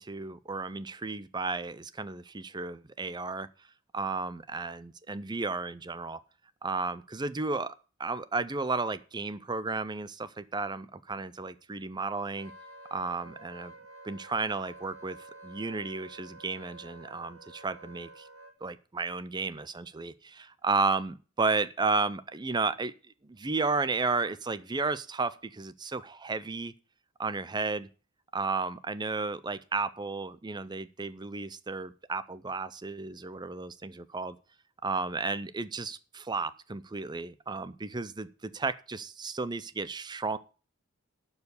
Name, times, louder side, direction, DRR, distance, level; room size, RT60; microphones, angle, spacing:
voice 1, 0.0-3.5 3.9-6.2 6.6-7.7 8.0-12.5 12.9-13.7 14.0-15.2 15.4-18.3 18.6-22.9 23.2-26.7 27.2-27.9 28.3-34.4 34.8-40.4, right 3 dB, 20° right, 15 dB, 0.5 m, -33 dB
Wind instrument woodwind instrument, 12.4-18.5, right 2 dB, 80° right, 2.0 m, -50 dB
12.0 x 4.8 x 8.1 m, 0.35 s
head